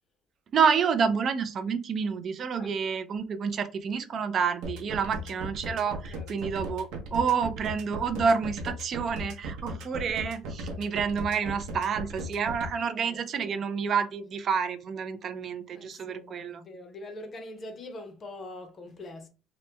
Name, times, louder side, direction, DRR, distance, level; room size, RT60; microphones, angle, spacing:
voice 1, 0.5-16.6, right 6 dB, 35° right, 0.3 m, -29 dB
sound 1, 4.6-12.7, right 1 dB, 75° right, 0.7 m, -36 dB
voice 2, 13.0-13.6 15.7-19.3, left 2 dB, 25° left, 0.5 m, -44 dB
2.9 x 2.1 x 3.2 m
cardioid pair, 170°, 0 cm